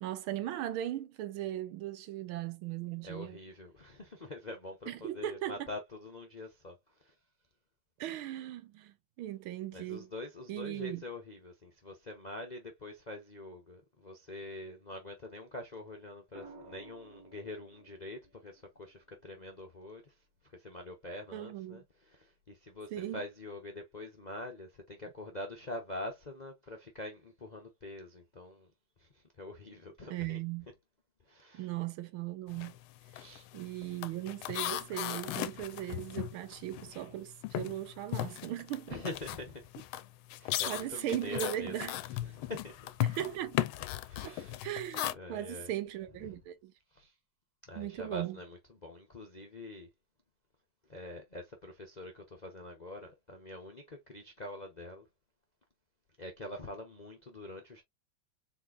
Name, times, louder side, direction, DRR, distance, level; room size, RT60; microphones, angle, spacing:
voice 1, 0.0-3.4 4.9-5.7 8.0-10.1 10.5-11.0 21.3-21.8 22.9-23.2 30.1-30.7 31.5-32.8 33.5-39.0 40.7-41.9 43.0-43.6 44.2-44.4 44.6-46.7 47.7-48.4, right 13 dB, 80° right, 1.6 m, -38 dB
voice 2, 3.0-7.1 9.7-20.1 20.5-28.7 29.0-30.4 31.3-31.7 33.1-33.5 38.9-39.7 40.4-41.8 42.2-42.9 44.0-44.6 45.1-45.7 46.3-46.4 46.9-47.1 47.6-49.9 50.9-55.1 56.2-57.8, left 2 dB, 45° left, 0.5 m, -45 dB
sound 1, 16.3-20.5 22.2-22.6, right 3 dB, 55° right, 1.5 m, -56 dB
sound 2, 32.5-32.8 33.1-37.1 37.4-45.1, left 14 dB, 85° left, 1.4 m, -37 dB
4.4 x 4.2 x 2.5 m
omnidirectional pair, 2.3 m